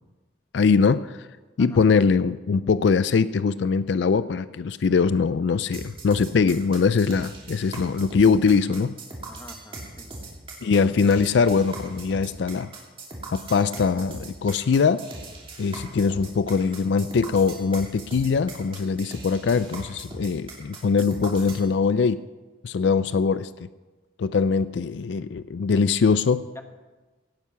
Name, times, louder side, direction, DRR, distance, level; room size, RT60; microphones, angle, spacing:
voice 1, 0.5-1.3 1.6-9.0 10.6-12.7 13.3-15.0 15.6-22.2 22.6-23.5 24.2-26.5, left 5 dB, 65° left, 14 dB, 0.4 m, -22 dB
sound 1, 5.7-21.7, right 2 dB, 30° right, 3.0 m, -39 dB
voice 2, 9.3-10.1 16.0-16.1 26.5-26.6, left 1 dB, 15° left, 6 dB, 1.1 m, -45 dB
17.0 x 9.4 x 5.8 m, 1.3 s
head